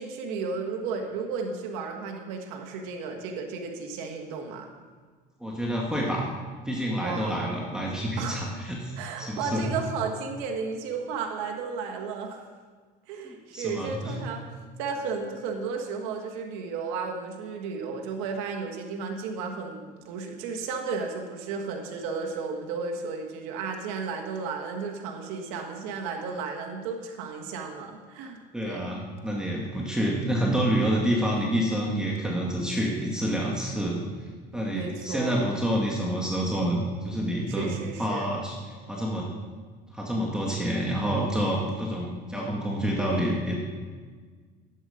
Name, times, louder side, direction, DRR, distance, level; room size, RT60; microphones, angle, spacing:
voice 1, 0.0-4.7 7.0-7.4 8.2-8.5 8.9-12.4 13.1-14.4 14.8-28.9 34.7-35.4 37.5-38.3, right 5 dB, 80° right, 3 dB, 1.5 m, -33 dB
voice 2, 5.4-6.3 6.7-9.8 13.2-14.2 28.5-34.0 34.5-38.6 38.9-39.3 39.9-43.6, equal, 5° right, -3 dB, 2.0 m, -28 dB
11.0 x 8.2 x 5.2 m, 1.5 s
supercardioid pair, 95°, 20 cm